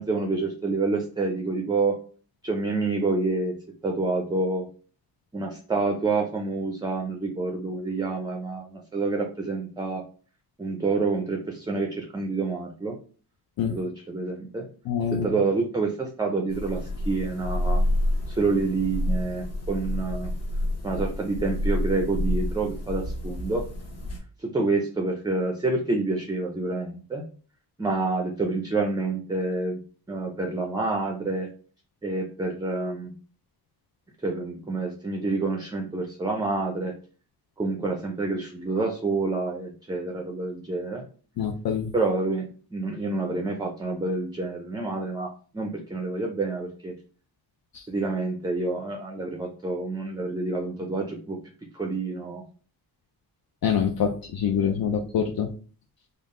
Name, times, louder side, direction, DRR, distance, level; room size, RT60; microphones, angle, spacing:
voice 1, 0.0-2.0 2.4-3.5 3.8-4.6 5.3-10.0 10.6-13.0 13.7-14.7 15.1-17.8 18.3-20.3 20.8-23.6 24.4-27.2 27.8-29.8 30.1-31.5 32.0-33.1 34.2-36.9 37.6-41.0 41.9-46.9 47.9-51.4 51.7-52.4, right 3 dB, 10° right, 2 dB, 0.4 m, -28 dB
voice 2, 14.9-15.3 41.4-41.9 47.7-47.8 53.6-55.5, left 7 dB, 60° left, 4 dB, 0.5 m, -25 dB
sound 1, 16.5-24.2, left 1 dB, 40° left, 1.0 m, -28 dB
3.7 x 2.1 x 3.6 m, 0.39 s
wide cardioid pair, 130°, 40 cm